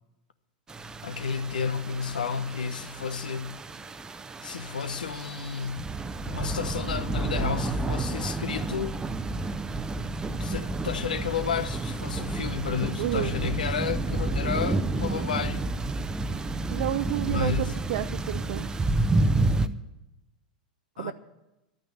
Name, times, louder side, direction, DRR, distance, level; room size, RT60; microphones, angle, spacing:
sound 1, 0.7-19.7, right 2 dB, 15° right, 0.8 m, -30 dB
voice 1, 1.0-3.5 4.4-5.8 6.3-9.0 10.4-15.7 17.2-17.7 21.0-21.1, left 6 dB, 80° left, 0.8 m, -31 dB
voice 2, 13.0-13.3 16.7-17.5 17.9-18.7 21.0-21.1, right 13 dB, 60° right, 0.7 m, -30 dB
12.0 x 9.3 x 8.7 m
hypercardioid pair, 95°, 4 cm